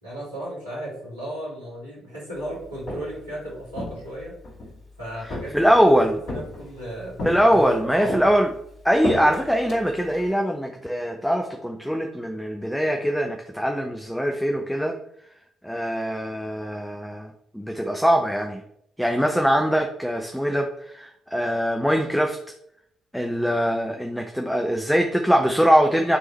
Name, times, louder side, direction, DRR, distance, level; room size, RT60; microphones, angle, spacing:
voice 1, 0.0-4.3 5.0-8.2, right 1 dB, 85° right, -8 dB, 2.8 m, -35 dB
Walk footsteps, 2.6-3.3 3.7-4.8 5.3-5.9 6.3-6.8 7.2-7.8 8.1-10.3, left 1 dB, 50° left, 2.9 m, -32 dB
voice 2, 5.5-6.2 7.2-8.5 8.8-15.0 15.6-17.3 17.5-18.6 19.0-22.4 23.1-26.2, equal, ahead, 3 dB, 0.8 m, -22 dB
11.0 x 3.7 x 3.1 m, 0.73 s
figure-of-eight pair, 45°, 0 cm